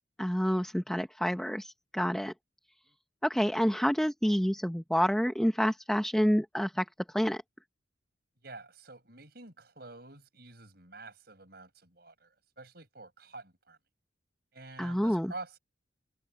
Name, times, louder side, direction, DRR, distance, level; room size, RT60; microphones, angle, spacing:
voice 1, 0.2-2.3 3.2-6.8 7.1-7.4 14.8-15.3, equal, 5° left, 0.8 m, -28 dB
voice 2, 8.4-13.8 14.5-15.6, right 3 dB, 55° right, 7.4 m, -48 dB
head